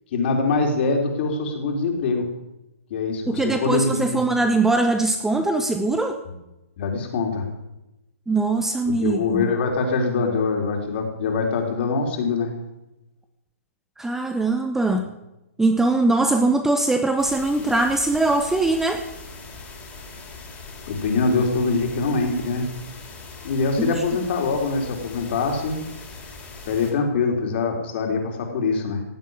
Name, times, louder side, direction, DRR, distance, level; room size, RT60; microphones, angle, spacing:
voice 1, 0.1-2.3 2.9-4.2 6.3-6.4 6.8-7.5 8.9-12.5 20.9-22.7 23.4-25.8 26.7-29.0, left 4 dB, 45° left, 2 dB, 4.0 m, -23 dB
voice 2, 3.3-6.2 8.3-9.5 14.0-15.1 15.6-19.0 23.8-24.0, right 2 dB, 5° right, 7 dB, 0.7 m, -21 dB
sound 1, 17.2-26.9, left 3 dB, 15° left, 3.7 m, -41 dB
16.5 x 7.5 x 9.6 m, 0.97 s
hypercardioid pair, 135°, 8 cm